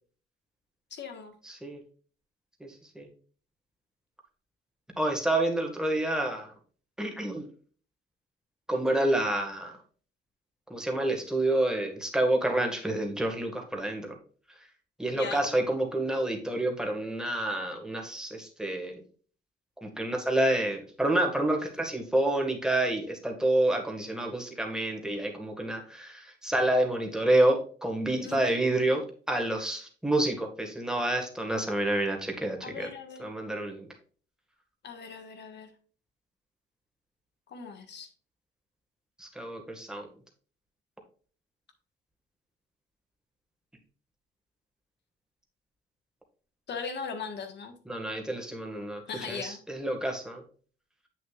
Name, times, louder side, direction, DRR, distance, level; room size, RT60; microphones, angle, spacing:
voice 1, 0.9-1.3 15.1-15.4 28.2-28.5 32.6-33.3 34.8-35.7 37.5-38.1 46.7-47.7 49.1-49.6, left 5 dB, 60° left, 6 dB, 1.5 m, -39 dB
voice 2, 1.4-1.8 2.6-2.7 3.0-3.1 5.0-6.5 7.0-7.5 8.7-9.8 10.7-14.2 15.0-19.0 19.8-32.9 33.2-33.9 39.2-40.1 47.9-49.0 49.3-50.4, right 1 dB, 5° right, 2 dB, 1.9 m, -28 dB
7.8 x 6.5 x 2.5 m, 0.42 s
cardioid pair, 90°, 20 cm